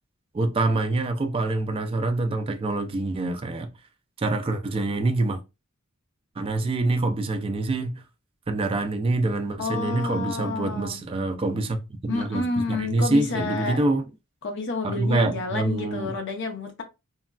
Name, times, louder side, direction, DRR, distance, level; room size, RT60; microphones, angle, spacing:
voice 1, 0.3-3.7 4.2-5.4 6.4-8.0 8.5-14.0 14.8-16.1, right 2 dB, 25° right, 0.3 m, -25 dB
voice 2, 9.6-11.0 12.1-13.9 14.4-16.8, left 3 dB, 55° left, 0.6 m, -29 dB
3.1 x 2.2 x 2.3 m
head